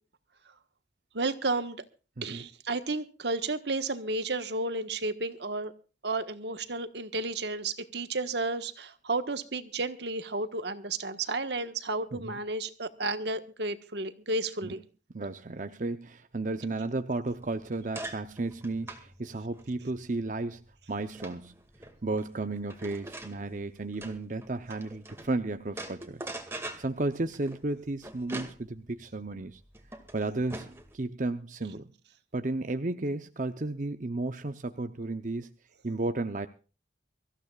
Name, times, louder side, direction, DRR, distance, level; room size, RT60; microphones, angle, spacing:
voice 1, 1.1-1.8 2.2-5.7 6.0-14.8, right 3 dB, 70° right, 9 dB, 1.4 m, -32 dB
voice 2, 15.1-20.6 20.9-21.5 22.0-26.3 26.6-29.6 30.1-31.9 32.3-35.5 35.8-36.5, right 2 dB, 45° right, 8 dB, 0.7 m, -33 dB
sound 1, 17.3-25.3 25.7-30.9, right 2 dB, 15° right, 2.1 m, -44 dB
24.5 x 15.0 x 2.4 m, 0.35 s
head